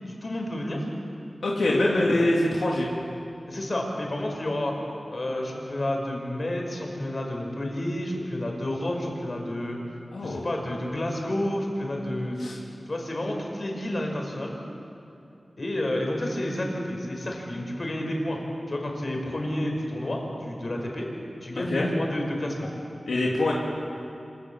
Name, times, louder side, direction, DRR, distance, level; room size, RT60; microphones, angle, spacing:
voice 1, 0.2-0.9 1.7-2.2 3.5-4.8 5.1-9.8 10.2-14.6 15.6-18.4 18.7-21.1 21.4-22.7, left 1 dB, 50° left, 1 dB, 5.2 m, -30 dB
voice 2, 1.4-2.9 10.1-10.4 12.4-12.6 21.7-21.9 23.1-23.5, left 1 dB, 90° left, -3 dB, 2.7 m, -24 dB
26.0 x 17.5 x 7.4 m, 2.7 s
cardioid pair, 50°, 0 cm